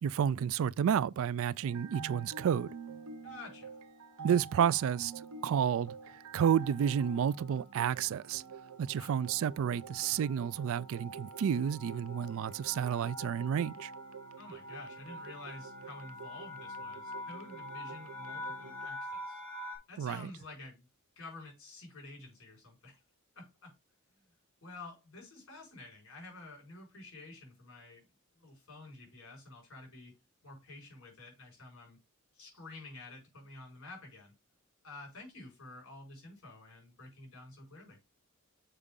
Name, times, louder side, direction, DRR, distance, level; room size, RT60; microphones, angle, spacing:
voice 1, 0.0-2.7 4.2-5.1 5.4-5.9 6.3-8.4 8.8-13.9 20.0-20.2, right 8 dB, 70° right, 0.3 m, -30 dB
sound 1, 1.6-2.1 2.9-3.2 3.5-3.7 4.0-19.8, left 1 dB, 20° left, 4.3 m, -47 dB
sound 2, 1.6-18.9, right 5 dB, 85° right, 0.7 m, -49 dB
voice 2, 3.2-3.7 8.9-9.1 14.4-19.4 19.9-20.9 21.1-23.0 23.3-23.7 24.1-24.2 24.6-28.0 28.4-30.1 30.4-32.0 32.3-34.3 34.8-38.0, left 2 dB, 65° left, 4.9 m, -50 dB
6.8 x 4.8 x 3.7 m
head